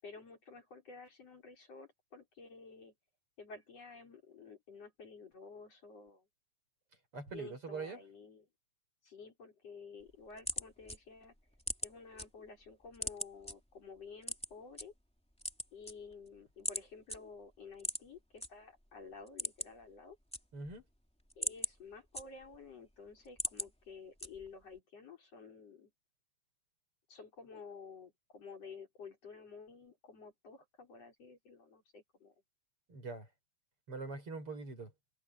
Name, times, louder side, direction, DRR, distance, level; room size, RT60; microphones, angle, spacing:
voice 1, 0.0-2.9 3.4-6.3 7.3-8.5 9.0-11.3 11.8-14.9 15.7-20.2 21.4-25.9 27.1-32.3, left 4 dB, 50° left, 6.0 m, -52 dB
voice 2, 7.1-8.0 20.5-20.8 32.9-33.3 33.9-34.9, right 4 dB, 45° right, 6.9 m, -43 dB
sound 1, 10.0-12.3 12.6-13.5 14.2-14.8 15.3-16.3 16.6-16.8 17.1-17.2 17.8-18.5 18.8-18.9 19.2-19.8 20.1-20.8 21.2-22.7 23.1-23.7 24.2-24.6, equal, ahead, 2.5 m, -39 dB
omnidirectional pair, 3.5 m